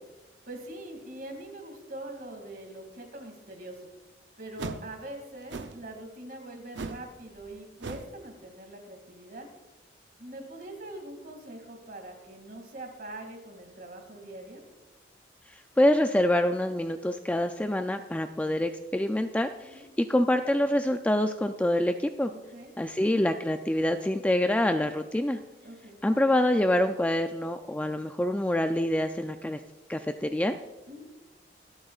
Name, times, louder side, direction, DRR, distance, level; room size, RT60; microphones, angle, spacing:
voice 1, 0.4-3.9 4.4-9.5 10.2-14.6 19.6-19.9 22.3-22.7 25.6-26.0 30.9-31.0, right 1 dB, 50° right, 3 dB, 2.3 m, -43 dB
sound 1, 4.6-4.9 5.5-5.8 6.7-7.1 7.3-7.5 7.8-8.1, right 3 dB, 85° right, 0.7 m, -38 dB
voice 2, 15.8-22.3 22.8-25.4 26.0-29.6 29.9-30.6, left 1 dB, 10° left, 7 dB, 0.3 m, -26 dB
26.0 x 8.8 x 2.4 m, 1.1 s
head